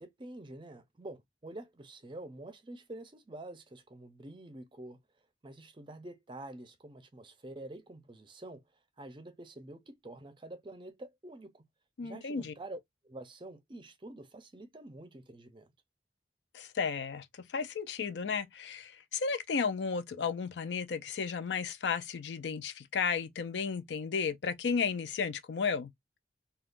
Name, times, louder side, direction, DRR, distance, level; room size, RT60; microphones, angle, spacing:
voice 1, 0.0-5.0 5.4-8.6 9.0-11.7 12.0-15.7, right 1 dB, 30° right, 0.5 m, -47 dB
voice 2, 12.0-12.5 16.5-17.3 17.5-25.9, left 5 dB, 75° left, 0.5 m, -33 dB
3.6 x 2.3 x 2.5 m
head